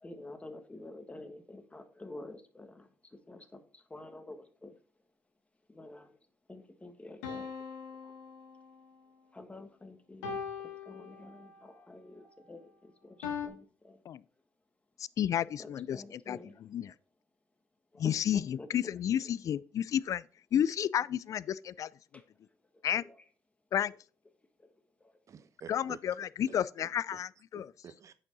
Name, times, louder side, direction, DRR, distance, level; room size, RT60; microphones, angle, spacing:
voice 1, 0.0-2.9 3.3-3.6 3.9-4.7 5.7-6.1 6.5-7.5 9.3-10.4 10.8-13.2 13.4-14.0 15.6-16.5 17.9-18.7 23.0-23.1, left 2 dB, 20° left, 1.6 m, -48 dB
sound 1, 7.2-9.0 10.2-11.7 13.2-13.5, left 6 dB, 90° left, 1.1 m, -41 dB
voice 2, 15.2-16.9 18.0-20.2 20.5-21.9 22.8-23.0 23.7-23.9 25.7-27.7, left 10 dB, 55° left, 0.4 m, -31 dB
voice 3, 25.3-27.2 27.5-28.1, right 7 dB, 50° right, 0.9 m, -51 dB
8.4 x 5.4 x 4.1 m
supercardioid pair, 60°, 7 cm